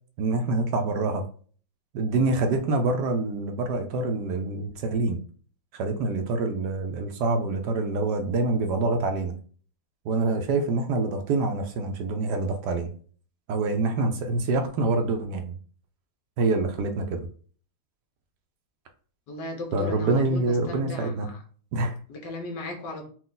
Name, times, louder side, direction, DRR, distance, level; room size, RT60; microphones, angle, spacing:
voice 1, 0.2-1.2 1.9-5.2 5.7-9.4 10.0-12.9 13.5-15.6 16.4-17.2 19.7-21.3 21.7-21.9, right 3 dB, 70° right, 5 dB, 1.1 m, -26 dB
voice 2, 19.3-21.1 22.1-23.1, left 2 dB, 70° left, 2 dB, 1.6 m, -36 dB
4.4 x 2.4 x 3.8 m, 0.43 s
omnidirectional pair, 2.0 m